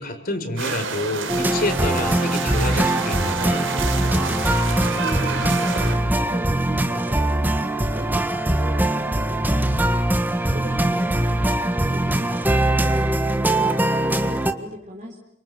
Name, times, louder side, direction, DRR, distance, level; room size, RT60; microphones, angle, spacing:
voice 1, 0.0-3.7, left 2 dB, 50° left, 6 dB, 4.3 m, -28 dB
sound 1, 0.6-6.0, right 4 dB, 80° right, 4.2 m, -29 dB
sound 2, 1.3-14.5, right 1 dB, 10° right, 1.6 m, -21 dB
voice 2, 4.7-10.1 10.5-13.1 13.4-15.2, right 1 dB, 40° right, 0 dB, 3.9 m, -38 dB
29.0 x 26.5 x 7.7 m, 0.74 s
head